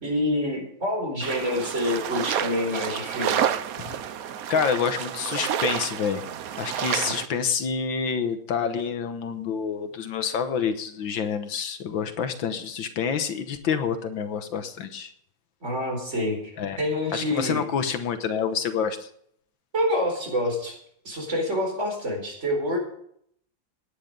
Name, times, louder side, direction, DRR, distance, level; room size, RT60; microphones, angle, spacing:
voice 1, 0.0-3.5 7.0-7.2 15.6-16.4 16.8-17.6 19.7-20.8 21.0-22.8, left 1 dB, 35° right, 1 dB, 4.8 m, -27 dB
sound 1, 1.2-7.3, right 9 dB, 60° right, 1.0 m, -29 dB
voice 2, 4.5-6.3 6.6-15.1 16.6-16.8 17.1-19.1, left 6 dB, 80° left, 9 dB, 1.9 m, -28 dB
18.0 x 10.0 x 5.3 m, 0.68 s
omnidirectional pair, 2.1 m